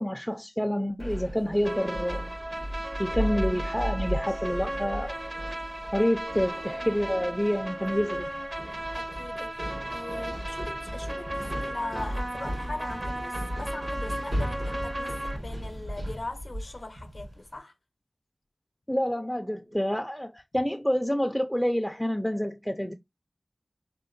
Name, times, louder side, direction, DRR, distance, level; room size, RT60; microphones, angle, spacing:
voice 1, 0.0-2.3 3.0-5.2 5.9-8.3 18.9-22.9, equal, ahead, 0.4 m, -28 dB
sound 1, 1.0-17.5, equal, 90° right, 2.1 m, -36 dB
sound 2, 1.6-15.4, right 1 dB, 35° right, 0.6 m, -36 dB
voice 2, 8.9-17.7, left 2 dB, 60° left, 0.7 m, -40 dB
3.6 x 2.5 x 2.5 m
wide cardioid pair, 50°, 0 cm